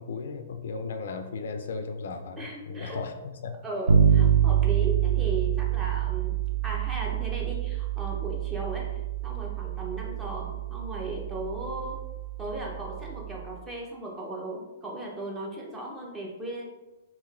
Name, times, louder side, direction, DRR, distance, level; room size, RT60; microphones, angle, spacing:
voice 1, 0.0-3.1 3.4-3.6, left 4 dB, 70° left, 7 dB, 0.3 m, -35 dB
voice 2, 2.4-3.0 3.6-6.3 6.6-12.0 12.4-16.7, right 2 dB, 15° right, -1 dB, 0.7 m, -36 dB
Bass guitar, 3.9-13.5, right 9 dB, 85° right, 0.3 m, -26 dB
2.9 x 2.8 x 2.5 m, 1.1 s
hypercardioid pair, 130°, 0 cm